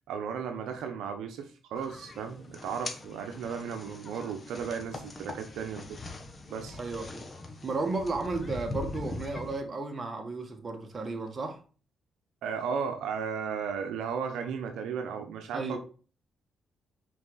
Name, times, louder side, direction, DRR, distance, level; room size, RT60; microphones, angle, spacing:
voice 1, 0.1-6.0 6.5-6.8 12.4-15.8, right 6 dB, 80° right, 0.9 m, -35 dB
sound 1, 1.7-9.6, left 2 dB, 35° left, 1.6 m, -42 dB
voice 2, 6.8-7.2 7.6-11.6 15.5-15.8, right 3 dB, 35° right, 1.8 m, -33 dB
6.0 x 5.0 x 4.1 m
supercardioid pair, 65°, 0 cm